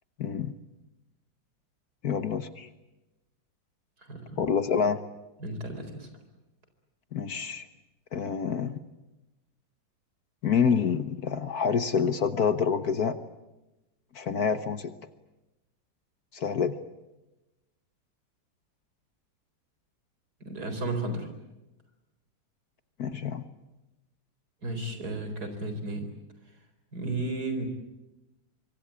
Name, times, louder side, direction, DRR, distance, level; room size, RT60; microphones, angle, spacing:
voice 1, 0.2-0.5 2.0-2.7 4.4-5.0 7.1-7.7 8.1-8.8 10.4-13.2 14.1-14.9 16.3-16.8 23.0-23.5, left 6 dB, 55° left, 11 dB, 1.5 m, -27 dB
voice 2, 4.0-4.4 5.4-6.1 20.4-21.3 24.6-26.1 26.9-27.7, right 2 dB, 55° right, 8 dB, 4.8 m, -33 dB
25.0 x 24.5 x 8.7 m, 1.0 s
omnidirectional pair, 2.1 m